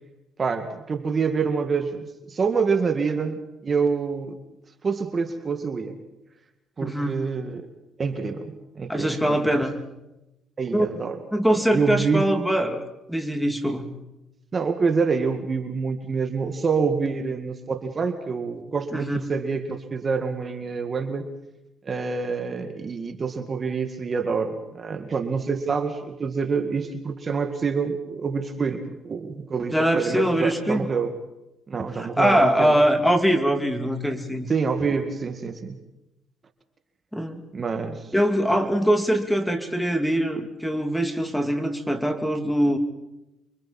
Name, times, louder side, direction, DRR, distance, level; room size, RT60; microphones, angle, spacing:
voice 1, 0.4-4.4 4.8-6.0 6.8-7.7 8.0-9.6 10.6-11.2 11.5-12.3 14.5-21.3 21.8-31.1 31.7-32.8 34.5-35.8 37.5-38.1, right 5 dB, 40° right, 7 dB, 2.0 m, -27 dB
voice 2, 6.8-7.2 8.9-9.8 10.7-10.9 11.3-13.9 18.9-19.2 29.7-30.9 32.0-34.5 37.1-37.4 38.1-42.8, equal, ahead, 6 dB, 2.7 m, -23 dB
29.0 x 24.0 x 4.4 m, 0.95 s
supercardioid pair, 75°, 0 cm